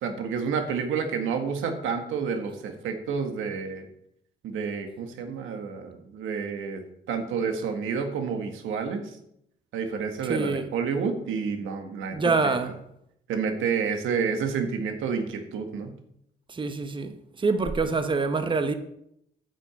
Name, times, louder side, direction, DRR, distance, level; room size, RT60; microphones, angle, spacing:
voice 1, 0.0-3.9 4.4-9.2 9.7-12.2 12.4-12.6 13.3-15.9, right 6 dB, 90° right, 1.6 m, -29 dB
voice 2, 10.3-10.7 12.1-12.7 16.5-18.7, right 4 dB, 25° right, 1.0 m, -26 dB
8.9 x 6.3 x 7.0 m
cardioid pair, 90°, 20 cm